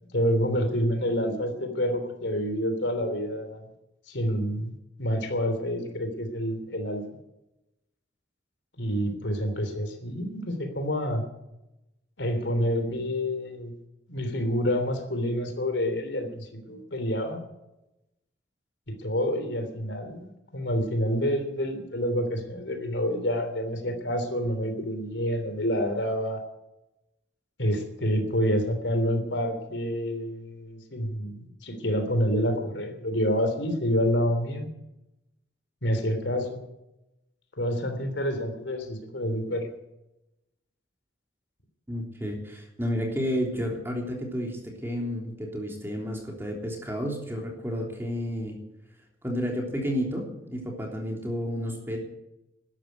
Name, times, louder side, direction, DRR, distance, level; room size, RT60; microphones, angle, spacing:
voice 1, 0.1-3.6 4.1-4.7 5.0-7.0 8.8-11.2 12.2-13.7 14.1-17.4 19.0-26.4 27.6-34.7 35.8-36.6 37.6-39.7, equal, 85° left, 7 dB, 3.3 m, -28 dB
voice 2, 41.9-48.6 49.2-52.0, equal, 15° right, 0 dB, 3.5 m, -31 dB
13.0 x 10.5 x 9.6 m, 0.91 s
head